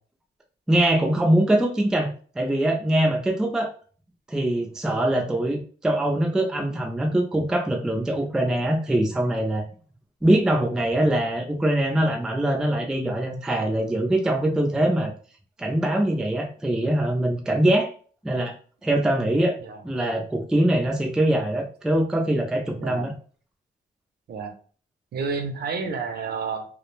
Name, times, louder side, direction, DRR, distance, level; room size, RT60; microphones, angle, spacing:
voice 1, 0.7-2.1 2.4-3.7 4.3-9.6 10.2-15.1 15.6-17.9 18.2-18.5 18.8-19.6 19.8-23.1, right 1 dB, 5° right, 2 dB, 0.3 m, -23 dB
voice 2, 22.8-23.1 24.3-24.5 25.1-26.7, right 5 dB, 60° right, 5 dB, 0.5 m, -30 dB
2.3 x 2.1 x 3.0 m, 0.42 s
wide cardioid pair, 160°, 19 cm